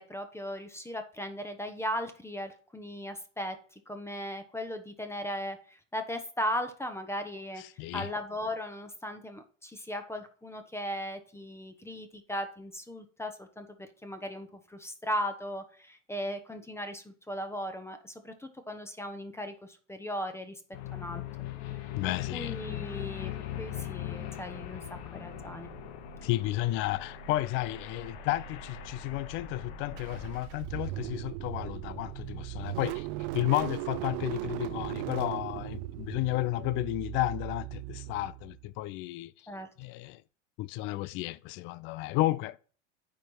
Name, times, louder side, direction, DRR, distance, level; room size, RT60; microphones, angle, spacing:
voice 1, 0.0-7.6 7.9-20.6 20.9-21.2 22.0-23.3 23.6-25.7 39.5-39.7, equal, 5° left, 1.1 m, -37 dB
voice 2, 7.8-8.1 22.0-22.5 26.2-33.1 33.3-39.3 39.8-40.2 40.6-42.6, left 17 dB, 35° left, 0.4 m, -32 dB
sound 1, 20.7-30.4, left 12 dB, 50° left, 1.1 m, -41 dB
sound 2, 24.4-37.4, right 7 dB, 90° right, 2.0 m, -50 dB
Car / Engine starting, 30.0-38.7, right 19 dB, 50° right, 0.6 m, -38 dB
9.3 x 4.6 x 4.5 m
figure-of-eight pair, 80°, 38 cm